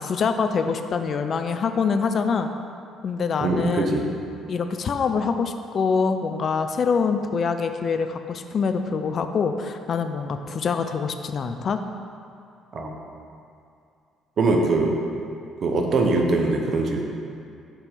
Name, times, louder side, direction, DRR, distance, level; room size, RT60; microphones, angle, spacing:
voice 1, 0.0-2.5 3.0-3.9 4.5-11.8, left 5 dB, 50° left, 8 dB, 0.4 m, -25 dB
voice 2, 3.4-4.0 12.7-12.9 14.4-15.0 15.6-17.0, right 2 dB, 50° right, 2 dB, 0.9 m, -22 dB
6.1 x 4.3 x 5.0 m, 2.4 s
hypercardioid pair, 50°, 0 cm